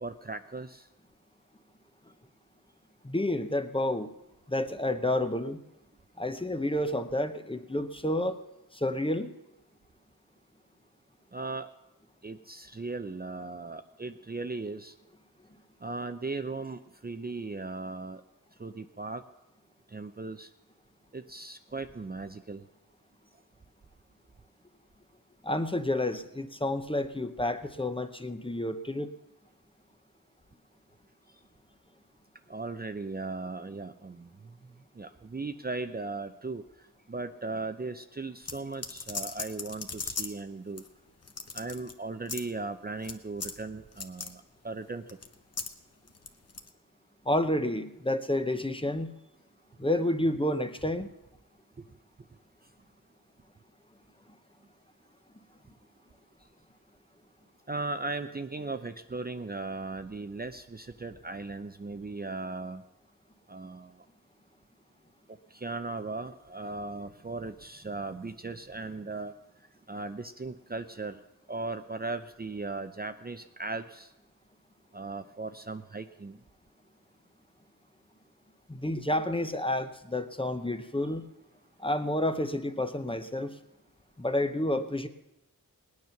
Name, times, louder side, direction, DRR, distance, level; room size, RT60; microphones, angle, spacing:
voice 1, 0.0-0.8 11.3-11.7 12.2-14.9 15.8-18.2 18.6-19.2 19.9-20.5 21.1-22.6 32.5-34.3 35.0-36.6 37.1-40.8 41.5-45.0 57.7-62.8 63.5-63.9 65.6-69.3 69.9-71.2 71.5-74.1 74.9-76.4, right 3 dB, 25° right, 8 dB, 0.6 m, -37 dB
voice 2, 3.0-4.1 4.5-5.6 6.2-8.4 8.7-9.3 25.4-29.1 47.2-49.1 49.8-51.1 78.7-81.3 81.8-83.5 84.2-85.1, left 1 dB, 15° left, 9 dB, 0.8 m, -30 dB
sound 1, 38.5-40.4 40.8-40.9 41.2-41.9 42.3-42.5 43.0-43.2 43.4-43.6 43.9-44.3 45.1-45.7 46.1-46.7, left 4 dB, 45° left, 1.0 m, -37 dB
18.5 x 9.6 x 5.8 m, 0.91 s
wide cardioid pair, 85°, 35 cm